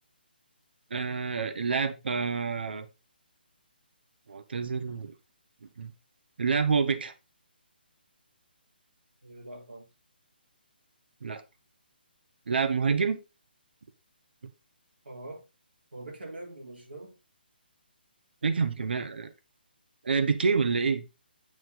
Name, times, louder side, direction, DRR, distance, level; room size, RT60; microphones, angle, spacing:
voice 1, 0.9-2.9 4.3-5.1 5.8-5.9 6.4-7.1 11.2-11.4 12.5-13.2 18.4-19.3 20.0-21.0, right 5 dB, 70° right, 1.3 m, -27 dB
voice 2, 9.2-9.9 15.0-15.4 15.9-17.2, right 2 dB, 90° right, 3.5 m, -43 dB
8.9 x 4.4 x 3.9 m
hypercardioid pair, 155°, 6 cm